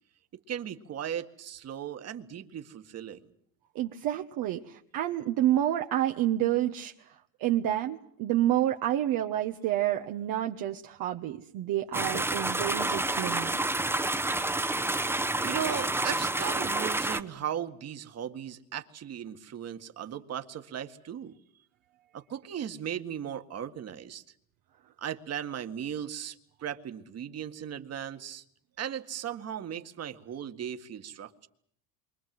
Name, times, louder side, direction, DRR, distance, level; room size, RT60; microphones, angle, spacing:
voice 1, 0.5-3.2 15.4-21.4 22.1-24.2 25.0-26.4 26.6-28.4 28.8-31.5, right 9 dB, 40° right, 7 dB, 1.9 m, -37 dB
voice 2, 3.7-6.9 7.4-13.6, right 12 dB, 55° right, 3 dB, 1.3 m, -29 dB
sound 1, 11.9-17.2, right 2 dB, 5° right, 1.2 m, -29 dB
28.5 x 24.0 x 7.9 m, 0.67 s
supercardioid pair, 95°, 39 cm